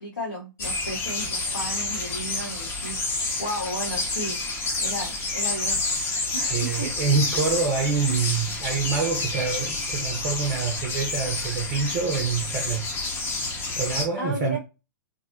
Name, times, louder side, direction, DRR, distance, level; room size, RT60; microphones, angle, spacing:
voice 1, 0.0-4.4 4.8-5.9 6.3-6.9 14.2-14.6, equal, 75° left, 0.9 m, -34 dB
sound 1, 0.6-14.1, left 3 dB, 20° left, 0.6 m, -29 dB
voice 2, 6.5-12.9 13.8-14.6, right 5 dB, 30° right, 0.4 m, -26 dB
2.5 x 2.0 x 2.5 m
figure-of-eight pair, 105°, 11 cm